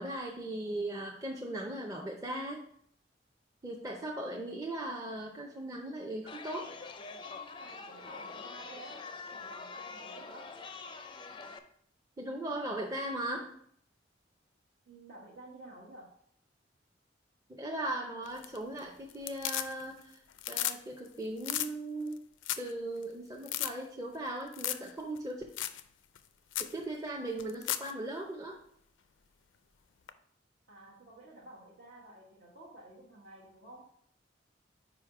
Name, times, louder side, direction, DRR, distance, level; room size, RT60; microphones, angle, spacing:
voice 1, 0.0-2.6 3.6-6.7 12.2-13.5 17.5-22.2 22.6-25.4 26.6-28.6, right 1 dB, 20° right, -1 dB, 0.6 m, -38 dB
Chatter, 6.3-11.6, left 4 dB, 25° left, 0.4 m, -45 dB
voice 2, 7.2-10.6 14.9-16.2 30.7-33.9, right 1 dB, 70° right, -5 dB, 1.2 m, -52 dB
sound 1, 18.3-18.8 19.1-20.0 20.3-20.8 21.1-21.2 21.4-21.7 22.1-22.2 22.4-22.7 23.0-23.1 23.4-23.7 24.5-24.9 25.2-25.3 25.6-25.8 26.2-26.3 26.5-26.7 27.4-27.9 30.1-30.2, left 12 dB, 85° left, 0.4 m, -34 dB
5.0 x 4.9 x 4.7 m, 0.67 s
head